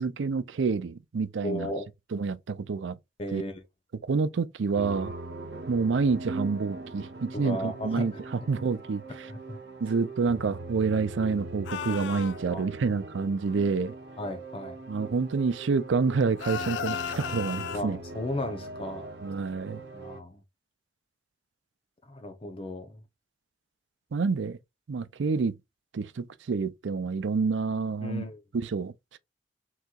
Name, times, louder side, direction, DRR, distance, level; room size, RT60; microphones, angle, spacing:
voice 1, 0.0-1.7 2.1-3.0 3.3-3.4 4.1-5.1 5.7-9.3 9.8-13.9 14.9-18.0 19.2-19.8 24.1-24.6 24.9-25.5 25.9-28.2 28.5-29.2, right 4 dB, 90° right, 0.5 m, -28 dB
voice 2, 1.4-1.9 3.2-3.6 7.3-8.2 9.3-9.6 12.5-12.7 14.2-14.8 17.7-19.1 19.9-20.4 22.1-23.0 28.0-28.4, left 1 dB, 30° left, 0.8 m, -35 dB
sound 1, 4.7-20.2, right 2 dB, 65° right, 0.8 m, -41 dB
sound 2, 11.6-12.4 16.4-17.8, left 8 dB, 80° left, 0.3 m, -34 dB
4.5 x 3.9 x 2.4 m
head